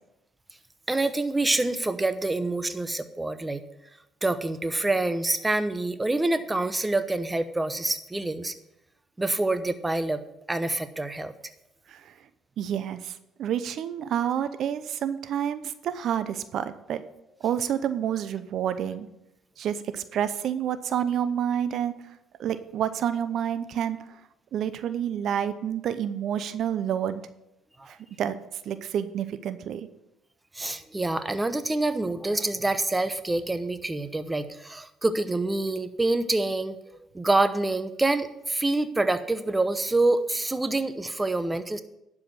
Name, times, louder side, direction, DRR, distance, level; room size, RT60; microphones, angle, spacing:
voice 1, 0.9-3.6 4.2-8.5 9.2-10.2 10.5-11.3 27.8-27.9 30.5-36.8 37.1-41.8, right 2 dB, 15° right, 11 dB, 0.9 m, -26 dB
voice 2, 12.6-17.0 17.4-19.1 19.6-21.9 22.4-24.0 24.5-27.2 27.9-28.4 28.6-29.9, right 9 dB, 65° right, 12 dB, 0.7 m, -29 dB
11.5 x 5.0 x 7.7 m, 0.88 s
cardioid pair, 85°, 0 cm